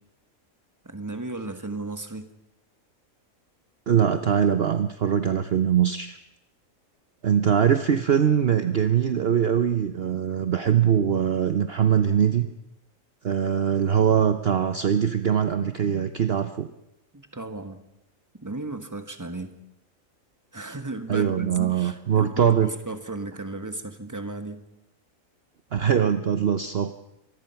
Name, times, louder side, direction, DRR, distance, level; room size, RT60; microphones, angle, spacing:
voice 1, 0.8-2.3 17.1-17.8 18.3-19.6 20.5-24.6, right 2 dB, 15° right, 8 dB, 1.6 m, -35 dB
voice 2, 3.9-6.2 7.2-12.5 13.2-16.7 21.1-22.7 25.7-26.9, right 8 dB, 50° right, 10 dB, 1.0 m, -22 dB
25.5 x 19.5 x 5.8 m, 0.87 s
omnidirectional pair, 1.4 m